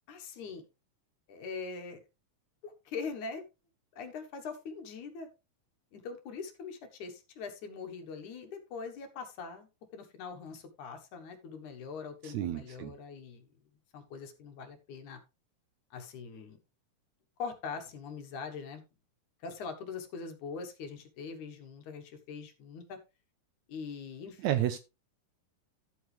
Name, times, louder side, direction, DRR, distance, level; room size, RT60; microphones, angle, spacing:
voice 1, 0.1-0.6 1.3-2.0 2.6-3.4 3.9-5.3 5.9-13.5 13.9-15.2 15.9-16.6 17.4-18.8 19.4-23.0 23.7-24.6, left 5 dB, 65° left, 2.7 m, -42 dB
voice 2, 12.2-12.9 24.4-24.8, right 12 dB, 75° right, 1.8 m, -31 dB
12.0 x 7.9 x 3.3 m
omnidirectional pair, 3.8 m